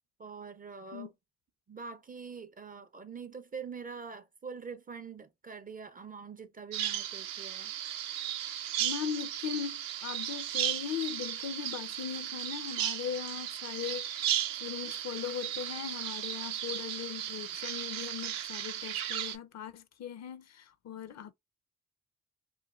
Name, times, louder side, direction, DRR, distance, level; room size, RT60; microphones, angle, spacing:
voice 1, 0.2-1.1 1.7-7.7, right 5 dB, 25° right, 0.4 m, -44 dB
Bird vocalization bird call bird song, 6.7-19.4, right 11 dB, 70° right, 0.5 m, -35 dB
voice 2, 8.8-14.3 14.6-21.3, left 9 dB, 50° left, 0.5 m, -39 dB
3.1 x 2.2 x 2.3 m
hypercardioid pair, 45°, 35 cm